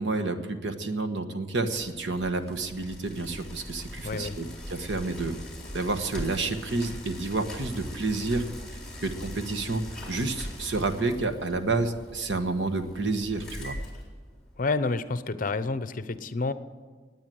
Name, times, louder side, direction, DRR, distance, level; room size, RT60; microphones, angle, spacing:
voice 1, 0.0-5.3 5.7-8.4 9.0-13.8, right 3 dB, 85° right, 8 dB, 1.3 m, -29 dB
Bicycle, 1.6-14.7, left 1 dB, 5° left, 4.0 m, -41 dB
voice 2, 4.0-4.4 14.6-16.5, left 3 dB, 50° left, 13 dB, 0.7 m, -29 dB
18.5 x 9.3 x 7.8 m, 1.5 s
head